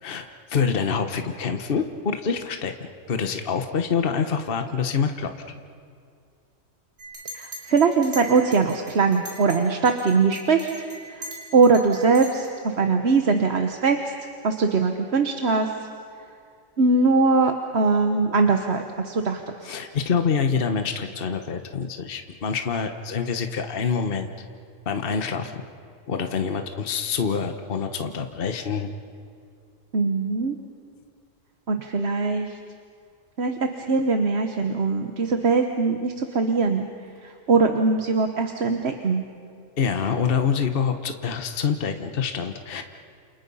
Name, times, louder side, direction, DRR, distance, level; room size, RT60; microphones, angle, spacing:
voice 1, 0.0-5.3 19.6-24.3 24.8-25.6 26.1-28.9 39.8-42.8, left 6 dB, 45° left, 7 dB, 1.3 m, -26 dB
Chink clink, 7.0-9.6 9.9-12.5, equal, 80° right, 5.6 m, -40 dB
voice 2, 7.3-10.7 11.1-11.3 11.5-14.1 14.4-15.7 16.8-19.7 29.9-30.5 31.7-32.5 33.4-33.5 33.9-36.9 37.2-39.2, right 4 dB, 55° right, 5 dB, 1.3 m, -21 dB
29.0 x 29.0 x 5.5 m, 2.4 s
omnidirectional pair, 1.4 m